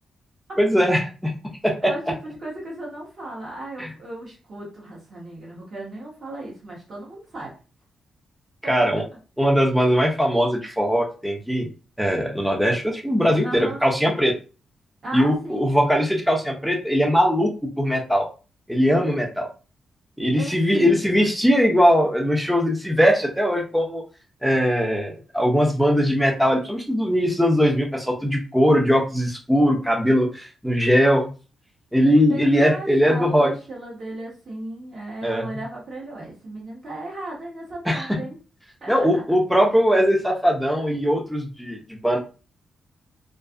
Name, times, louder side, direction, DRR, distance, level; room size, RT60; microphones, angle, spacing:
voice 1, 0.6-1.3 1.6-1.9 3.8-3.9 8.7-9.0 9.4-11.7 12.0-14.3 15.1-17.5 17.8-18.3 18.7-19.5 20.2-24.0 24.4-31.3 31.9-33.5 35.2-35.4 37.9-38.2 38.9-42.2, equal, ahead, 1 dB, 0.4 m, -20 dB
voice 2, 1.8-7.5 8.6-8.7 13.4-13.8 15.0-16.0 20.4-21.3 32.2-38.4 38.8-39.4, right 2 dB, 40° right, -5 dB, 0.9 m, -36 dB
2.4 x 2.4 x 2.3 m, 0.34 s
wide cardioid pair, 165°, 0 cm